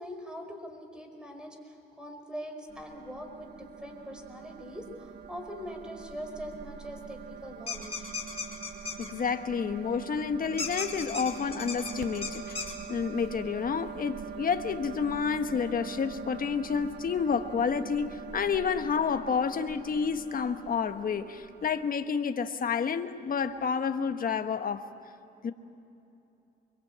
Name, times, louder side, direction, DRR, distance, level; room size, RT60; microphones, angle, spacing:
voice 1, 0.0-8.1, equal, 5° right, 4 dB, 4.9 m, -42 dB
sound 1, 2.7-21.9, right 7 dB, 60° right, 1.0 m, -44 dB
sound 2, 7.7-9.1 10.6-12.7, left 4 dB, 30° left, 4.2 m, -36 dB
voice 2, 9.0-12.6 12.9-24.8 25.4-25.5, left 6 dB, 45° left, 8 dB, 1.4 m, -30 dB
25.0 x 22.5 x 8.8 m, 2.9 s
cardioid pair, 90°, 20 cm